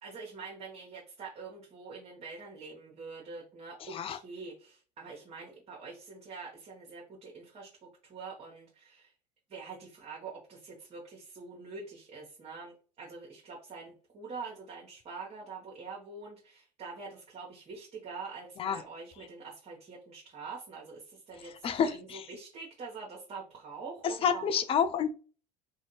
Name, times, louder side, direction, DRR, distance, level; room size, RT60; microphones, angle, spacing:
voice 1, 0.0-9.1 9.5-24.5, right 4 dB, 30° right, 1.0 m, -45 dB
voice 2, 21.6-22.3 24.0-25.1, left 7 dB, 30° left, 0.4 m, -29 dB
2.7 x 2.6 x 2.9 m
figure-of-eight pair, 70°, 21 cm